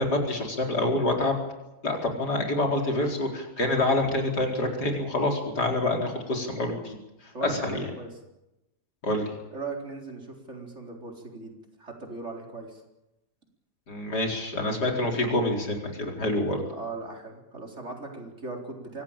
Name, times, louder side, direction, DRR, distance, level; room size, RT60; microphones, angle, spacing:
voice 1, 0.0-1.4 1.8-7.0 7.4-7.8 9.0-9.3 13.9-16.6, left 2 dB, 80° left, 1 dB, 5.0 m, -27 dB
voice 2, 7.3-8.1 9.5-12.8 16.7-19.0, right 3 dB, 45° right, 1 dB, 4.4 m, -38 dB
24.5 x 17.0 x 8.9 m, 0.94 s
omnidirectional pair, 1.7 m